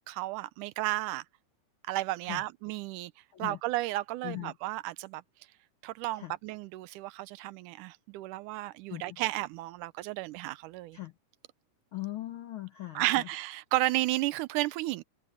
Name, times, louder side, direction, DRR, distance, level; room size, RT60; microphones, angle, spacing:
voice 1, 0.1-1.2 1.9-3.1 3.4-5.2 5.8-11.0 13.0-15.0, right 17 dB, 85° right, 2.2 m, -33 dB
voice 2, 4.2-4.5 6.1-6.3 8.9-9.2 10.9-11.1 11.9-13.3, left 16 dB, 70° left, 1.2 m, -39 dB
omnidirectional pair, 3.6 m